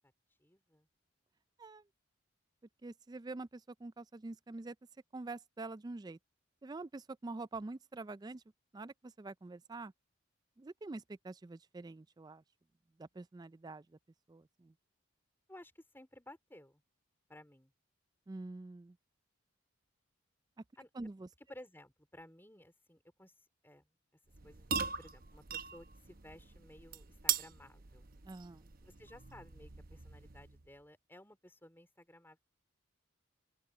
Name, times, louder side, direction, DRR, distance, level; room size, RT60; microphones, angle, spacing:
voice 1, 0.4-0.9 15.5-16.8 17.3-17.7 20.8-20.9 21.5-23.3 23.6-23.9 24.4-28.1 28.8-32.4, left 1 dB, 10° left, 4.3 m, -56 dB
voice 2, 2.8-4.8 5.1-6.2 6.6-8.4 8.7-9.9 10.6-12.4 13.0-14.0 14.3-14.7 18.3-19.0 20.9-21.3 28.2-28.7, right 3 dB, 20° right, 0.3 m, -46 dB
sound 1, 24.3-30.7, right 7 dB, 45° right, 0.8 m, -41 dB
open air
head